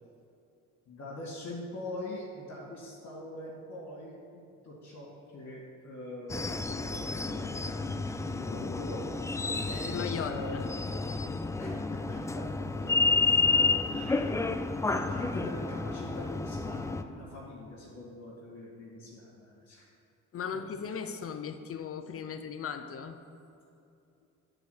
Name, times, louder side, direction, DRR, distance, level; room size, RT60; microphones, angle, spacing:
voice 1, 0.9-9.2 9.6-10.6 11.6-13.1 13.5-19.9, left 1 dB, 70° left, -7 dB, 2.3 m, -43 dB
sound 1, 6.3-17.0, left 3 dB, 10° left, 0.3 m, -30 dB
voice 2, 9.7-10.7 11.1-11.3 20.3-23.2, left 7 dB, 50° left, 8 dB, 0.7 m, -37 dB
9.0 x 5.0 x 6.6 m, 2.7 s
cardioid pair, 90°, 30 cm